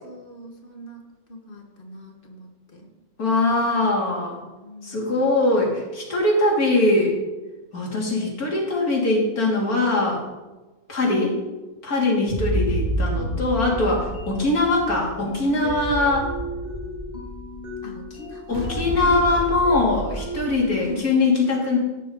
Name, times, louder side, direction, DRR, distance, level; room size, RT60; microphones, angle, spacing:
voice 1, 0.0-1.0 1.3-2.9 3.6-3.8 4.6-5.3 11.0-11.5 15.2-15.7 17.8-19.5 20.8-21.1, left 1 dB, 35° left, 2 dB, 2.0 m, -39 dB
voice 2, 3.2-4.4 4.8-7.2 7.7-10.2 10.9-11.3 11.8-16.3 18.5-21.8, left 2 dB, 80° left, -2 dB, 3.5 m, -21 dB
sound 1, 12.3-20.8, equal, 30° right, 2.2 m, -30 dB
14.5 x 10.5 x 3.9 m, 1.2 s
omnidirectional pair, 1.5 m